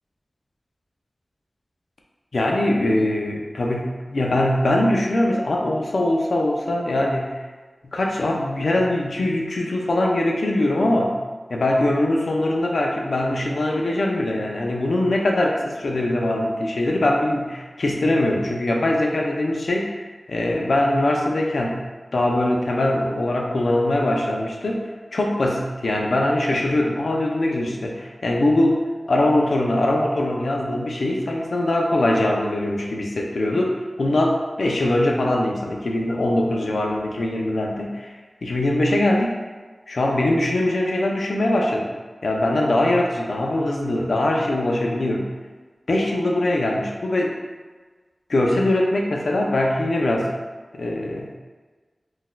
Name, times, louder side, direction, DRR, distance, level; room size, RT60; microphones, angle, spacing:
voice 1, 2.3-7.4 7.8-11.2 11.5-21.8 22.1-38.1 38.4-39.4 39.9-41.9 42.2-45.3 45.9-47.3 48.3-50.3 50.7-51.3, left 1 dB, 80° left, 0 dB, 0.4 m, -22 dB
3.9 x 2.5 x 2.2 m, 1.4 s
wide cardioid pair, 65°, 0 cm